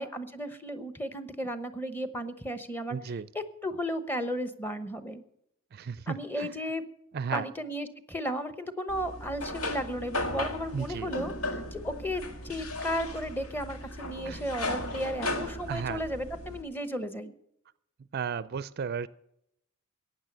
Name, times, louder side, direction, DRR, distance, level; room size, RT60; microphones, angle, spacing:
voice 1, 0.0-3.0 3.3-5.2 6.1-6.8 7.3-11.3 11.7-17.3, equal, 10° left, 10 dB, 1.0 m, -34 dB
voice 2, 2.9-3.3 5.7-6.5 7.1-7.5 10.7-11.1 14.3-14.4 15.7-16.0 18.1-19.1, right 6 dB, 50° right, 17 dB, 0.4 m, -34 dB
sound 1, 8.9-16.6, left 1 dB, 85° left, 1.8 m, -36 dB
15.0 x 9.4 x 6.7 m, 0.78 s
head